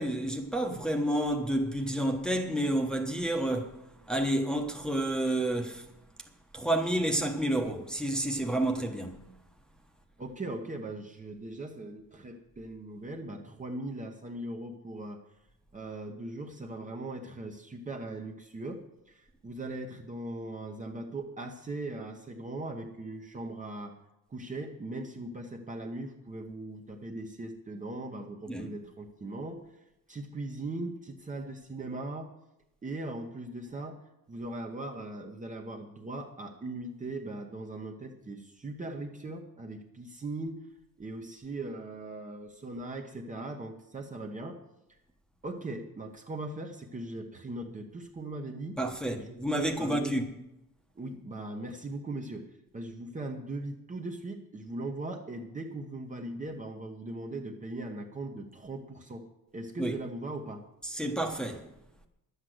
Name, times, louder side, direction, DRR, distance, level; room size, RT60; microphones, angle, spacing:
voice 1, 0.0-3.8 4.1-5.9 6.5-9.2 28.5-28.7 48.8-50.3 59.8-60.0 60.8-61.6, right 1 dB, ahead, 1.1 m, -30 dB
voice 2, 10.2-15.2 15.7-24.0 24.3-29.6 30.1-32.3 32.8-34.0 34.3-40.6 41.0-44.6 45.4-48.8 49.2-50.3 51.0-52.5 52.7-59.2 59.5-60.6, right 2 dB, 20° right, 0.9 m, -39 dB
11.5 x 8.1 x 7.7 m
wide cardioid pair, 165°, 34 cm